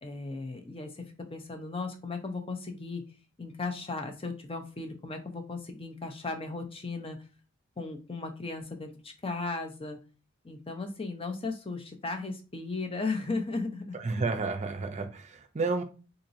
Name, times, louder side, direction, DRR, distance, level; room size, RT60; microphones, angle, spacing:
voice 1, 0.0-1.0 1.3-3.0 3.4-7.2 7.8-10.0 10.4-14.0, left 3 dB, 25° left, 6 dB, 0.6 m, -36 dB
voice 2, 13.9-15.8, right 3 dB, 35° right, 7 dB, 0.6 m, -31 dB
3.9 x 2.9 x 2.5 m, 0.34 s
head